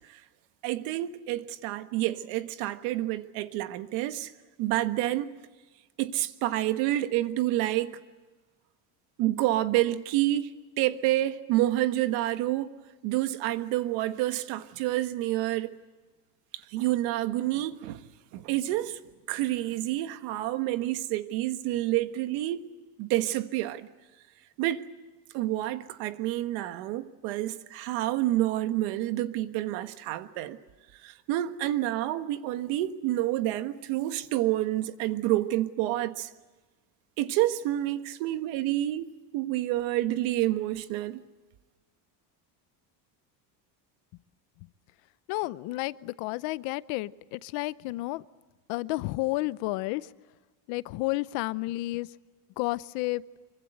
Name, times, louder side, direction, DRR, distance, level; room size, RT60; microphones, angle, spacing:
voice 1, 0.6-4.3 4.6-5.3 6.0-8.0 9.2-10.5 10.8-12.7 13.0-15.8 16.7-18.1 18.3-19.0 19.3-22.6 23.0-23.9 24.6-24.8 25.3-30.6 31.0-36.3 37.2-41.2, right 15 dB, 80° right, 1.6 m, -28 dB
voice 2, 45.3-48.2 48.7-50.1 50.7-52.1 52.6-53.2, left 20 dB, 80° left, 0.9 m, -31 dB
25.5 x 24.0 x 7.9 m
cardioid pair, 150°, 44 cm